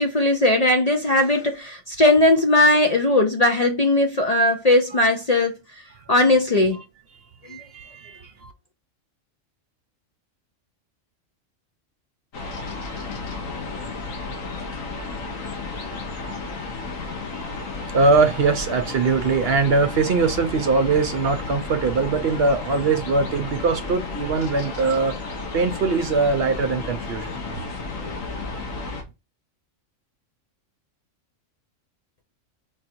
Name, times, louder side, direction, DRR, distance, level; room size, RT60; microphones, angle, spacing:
voice 1, 0.0-5.5 6.1-6.8 7.5-7.6, left 2 dB, 40° left, 0.6 m, -18 dB
voice 2, 7.4-8.5 17.3-17.5 17.9-25.1 25.5-27.3, right 4 dB, 60° right, 0.8 m, -22 dB
sound 1, 12.3-29.0, left 3 dB, 90° left, 1.5 m, -33 dB
4.7 x 2.6 x 4.3 m
omnidirectional pair, 1.3 m